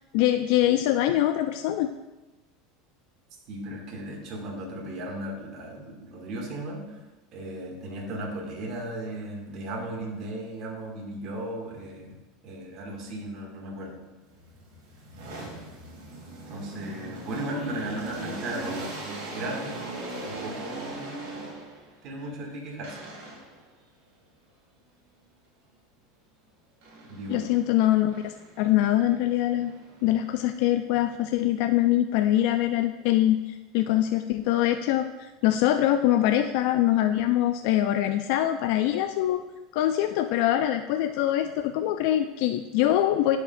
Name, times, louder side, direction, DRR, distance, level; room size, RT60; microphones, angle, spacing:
voice 1, 0.1-1.9 27.3-29.7 30.0-39.4 39.7-43.4, left 13 dB, 65° left, 8 dB, 0.3 m, -24 dB
voice 2, 3.5-6.9 7.3-12.1 12.4-14.0 16.5-18.9 19.3-19.8 20.2-21.1 22.0-23.0 27.1-27.5, right 1 dB, 50° right, -1 dB, 2.1 m, -36 dB
sound 1, 14.3-21.9 22.8-23.6 26.8-27.6 28.1-30.5, right 1 dB, 75° right, 2.2 m, -40 dB
11.0 x 5.0 x 2.6 m, 1.1 s
supercardioid pair, 110°, 0 cm